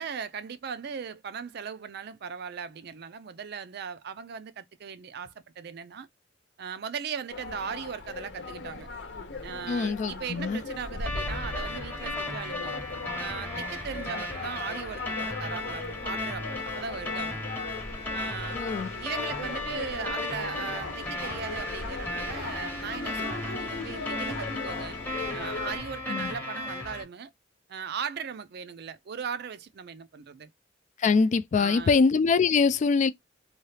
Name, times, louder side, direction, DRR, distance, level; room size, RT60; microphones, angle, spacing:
voice 1, 0.0-6.1 6.6-8.9 9.4-12.8 13.2-17.4 18.1-18.6 19.0-25.0 25.3-27.3 27.7-30.5 31.6-31.9, right 6 dB, 60° right, 0.4 m, -38 dB
sound 1, 7.3-25.8, left 3 dB, 70° left, 0.8 m, -38 dB
voice 2, 9.7-10.6 18.5-18.9 26.1-26.3 31.0-33.1, left 5 dB, 40° left, 0.3 m, -23 dB
sound 2, 11.1-27.0, left 2 dB, 10° left, 0.8 m, -35 dB
2.8 x 2.3 x 3.2 m
head